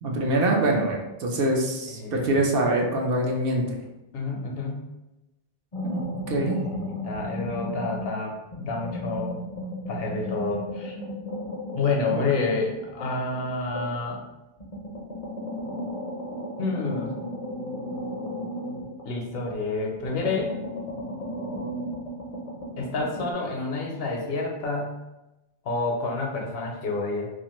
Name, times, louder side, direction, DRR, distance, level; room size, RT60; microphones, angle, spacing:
voice 1, 0.0-3.8 5.8-6.0 6.3-6.6 12.1-12.2, right 1 dB, 65° right, 0 dB, 0.7 m, -24 dB
voice 2, 1.9-2.5 4.1-4.9 6.4-9.4 9.9-11.0 11.7-14.2 16.6-17.2 19.0-20.5 22.8-25.0 25.6-27.3, left 3 dB, 70° left, 1 dB, 0.8 m, -29 dB
sound 1, 5.7-8.2 8.5-14.1 14.6-19.6 20.0-23.3, equal, 45° left, 0.4 m, -35 dB
2.5 x 2.4 x 2.9 m, 0.98 s
omnidirectional pair, 1.1 m